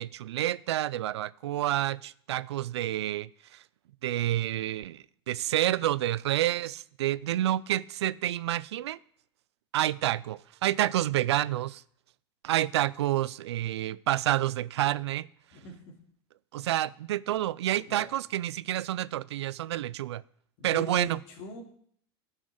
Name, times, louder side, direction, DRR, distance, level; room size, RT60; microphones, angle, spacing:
voice 1, 0.0-3.6 4.0-9.0 9.7-11.8 12.4-15.3 16.5-20.2 20.6-21.2, right 13 dB, 90° right, 20 dB, 0.4 m, -29 dB
voice 2, 15.5-15.9 17.7-18.1 20.6-21.6, left 4 dB, 55° left, 1 dB, 3.0 m, -42 dB
11.0 x 6.5 x 6.6 m, 0.62 s
hypercardioid pair, 110°, 14 cm